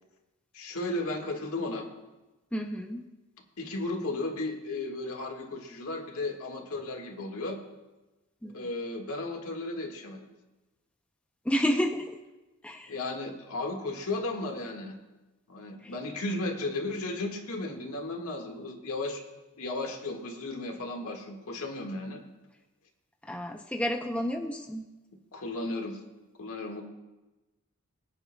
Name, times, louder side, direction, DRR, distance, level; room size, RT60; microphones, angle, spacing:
voice 1, 0.5-1.9 3.6-7.6 8.5-10.3 12.9-15.0 15.5-19.2 19.6-22.2 25.3-26.0 26.4-26.8, left 2 dB, 70° left, 2 dB, 1.7 m, -34 dB
voice 2, 2.5-3.0 8.4-8.5 11.5-12.2 12.6-12.9 15.8-15.9 23.3-24.8, equal, 5° left, 3 dB, 0.5 m, -30 dB
22.5 x 9.5 x 2.2 m, 1.1 s
head